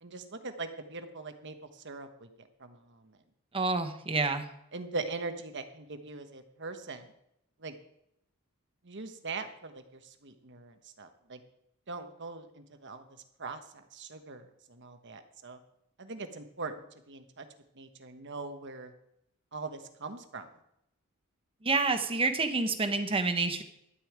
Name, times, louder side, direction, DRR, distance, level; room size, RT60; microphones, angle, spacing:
voice 1, 0.0-1.5 1.8-2.3 2.6-2.8 4.7-7.0 7.6-7.7 8.8-9.8 10.2-11.4 11.9-13.0 13.4-13.6 13.9-14.4 14.7-15.6 16.0-16.7 17.1-17.4 17.8-18.9 19.5-20.5, right 3 dB, 55° right, 7 dB, 1.3 m, -41 dB
voice 2, 3.5-4.5 21.6-23.6, right 3 dB, 25° right, 7 dB, 1.1 m, -28 dB
12.5 x 5.6 x 8.7 m, 0.79 s
head